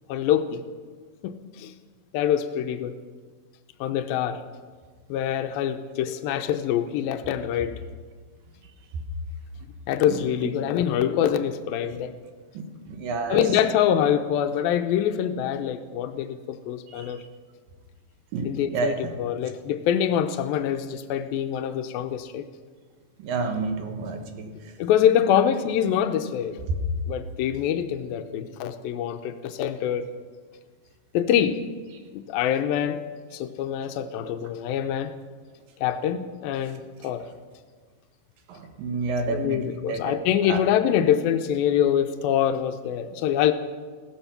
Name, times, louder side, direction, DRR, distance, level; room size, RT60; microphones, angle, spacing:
voice 1, 0.1-0.6 1.2-1.7 2.1-3.0 3.8-4.4 5.1-7.8 9.9-12.1 13.3-17.2 18.4-22.5 24.8-26.6 27.1-30.0 31.1-31.6 32.1-33.0 33.3-35.1 35.8-37.3 39.3-43.5, left 10 dB, 90° left, 8 dB, 2.5 m, -25 dB
voice 2, 12.5-13.4 17.0-17.2 18.3-19.1 23.2-24.7 38.5-40.1 40.5-40.6, right 4 dB, 75° right, 5 dB, 3.0 m, -30 dB
16.5 x 13.5 x 5.9 m, 1.5 s
omnidirectional pair, 4.2 m